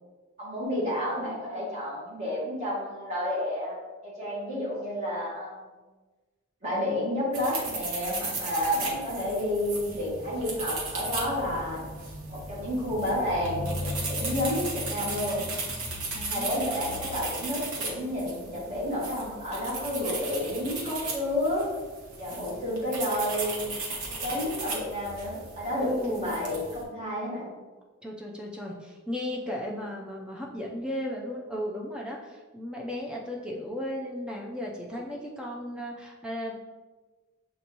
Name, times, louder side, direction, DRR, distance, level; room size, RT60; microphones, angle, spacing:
voice 1, 0.4-3.8 4.0-5.7 6.6-11.8 12.3-15.4 16.3-21.7 22.2-23.7 24.2-27.5, left 1 dB, 30° right, -7 dB, 1.5 m, -30 dB
sound 1, 7.3-26.8, right 2 dB, 85° right, 1.0 m, -36 dB
voice 2, 16.1-16.6 25.8-26.4 28.0-36.5, left 1 dB, 5° right, -2 dB, 0.4 m, -35 dB
6.7 x 2.6 x 2.9 m, 1.3 s
head